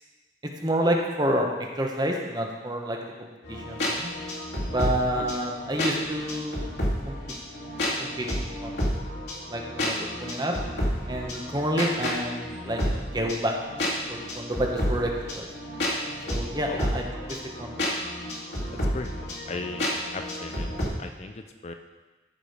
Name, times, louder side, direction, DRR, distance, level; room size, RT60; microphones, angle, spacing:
voice 1, 0.6-1.5 1.8-4.1 4.7-6.7 7.0-7.2 8.0-8.9 9.5-10.5 11.1-12.8 13.1-13.5 14.1-15.5 16.3-17.7, right 1 dB, 25° right, 1 dB, 1.1 m, -29 dB
sound 1, 3.4-20.9, equal, 80° left, 2.5 m, -31 dB
voice 2, 18.9-20.7 21.0-21.7, left 3 dB, 40° left, 7 dB, 0.4 m, -37 dB
13.5 x 5.1 x 5.1 m, 1.2 s
head